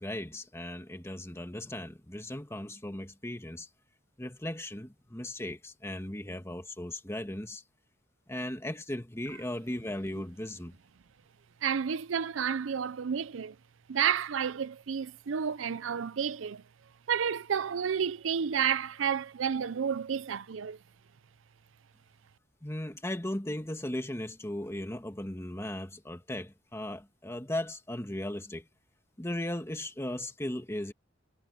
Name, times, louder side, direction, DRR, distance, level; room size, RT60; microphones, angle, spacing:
voice 1, 0.0-3.7 4.2-7.6 8.3-10.7 22.6-28.7 29.2-30.9, left 1 dB, 15° left, 1.9 m, -37 dB
voice 2, 11.6-13.6 13.9-16.6 17.1-20.8, right 7 dB, 85° right, 0.5 m, -31 dB
head